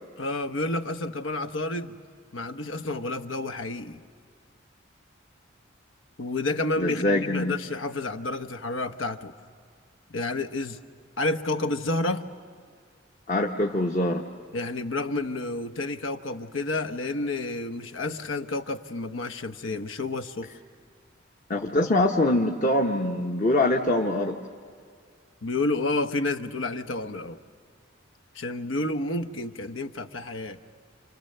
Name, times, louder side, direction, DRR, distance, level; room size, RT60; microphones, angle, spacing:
voice 1, 0.2-2.0 2.3-4.0 6.2-9.3 10.1-10.8 11.2-12.3 14.5-20.5 25.4-27.4 28.3-30.6, left 2 dB, 80° left, 9 dB, 1.0 m, -30 dB
voice 2, 6.8-7.6 13.3-14.2 21.5-24.4, left 1 dB, 40° left, 2 dB, 1.0 m, -24 dB
29.5 x 28.0 x 6.7 m, 2.1 s
head